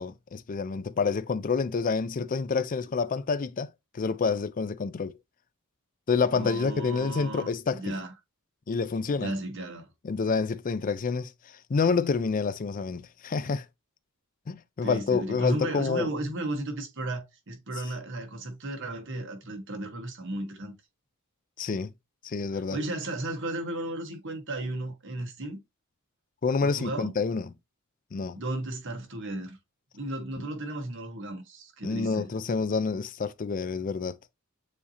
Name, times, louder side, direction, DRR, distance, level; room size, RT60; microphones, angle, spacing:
voice 1, 0.0-5.2 6.1-8.0 8.7-9.3 10.0-11.3 11.7-13.7 14.5-16.1 21.6-21.9 22.2-22.8 26.4-27.5 28.1-28.4 30.4-30.5 31.8-34.2, left 5 dB, 35° left, 0.4 m, -28 dB
voice 2, 6.3-8.1 9.2-9.9 14.8-20.7 22.7-25.6 26.6-27.1 28.3-29.6 29.9-32.3, right 1 dB, 55° right, 1.3 m, -34 dB
7.0 x 2.8 x 2.8 m
head